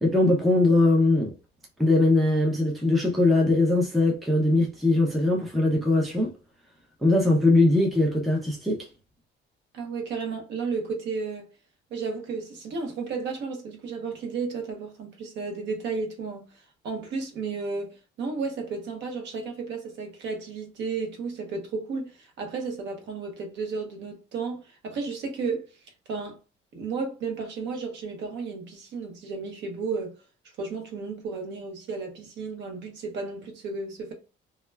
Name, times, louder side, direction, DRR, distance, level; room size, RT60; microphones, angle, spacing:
voice 1, 0.0-1.3 1.8-6.3 7.0-8.9, left 2 dB, ahead, 0.3 m, -21 dB
voice 2, 9.7-11.5 11.9-25.6 26.1-26.4 26.7-30.2 30.6-34.1, right 4 dB, 60° right, 0.8 m, -33 dB
2.2 x 2.1 x 3.2 m
cardioid pair, 165°, 21 cm